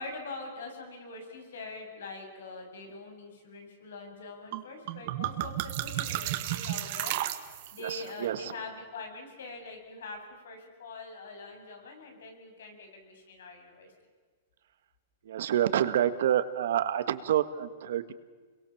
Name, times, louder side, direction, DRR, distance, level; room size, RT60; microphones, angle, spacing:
voice 1, 0.0-7.2 7.7-13.9, left 3 dB, 90° left, 4 dB, 7.4 m, -43 dB
sound 1, 4.5-4.6 4.9-7.9, right 14 dB, 45° right, 1.6 m, -33 dB
voice 2, 7.8-8.5 15.2-18.1, right 10 dB, 70° right, 11 dB, 1.7 m, -28 dB
29.5 x 23.0 x 7.3 m, 1.5 s
supercardioid pair, 165°, 0 cm